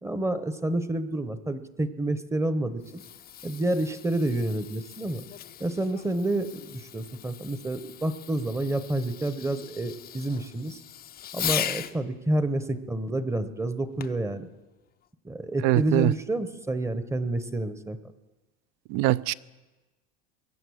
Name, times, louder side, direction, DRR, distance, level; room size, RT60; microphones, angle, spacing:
voice 1, 0.0-3.0 3.4-5.2 5.6-10.8 11.3-14.5 15.2-18.0, right 1 dB, 10° right, 0.8 m, -29 dB
Fireworks, 2.6-12.0 14.0-14.3 15.0-15.1, left 10 dB, 30° left, 0.5 m, -38 dB
voice 2, 15.6-16.1 18.9-19.3, right 17 dB, 70° right, 0.5 m, -22 dB
22.5 x 7.8 x 6.4 m
supercardioid pair, 115°, 33 cm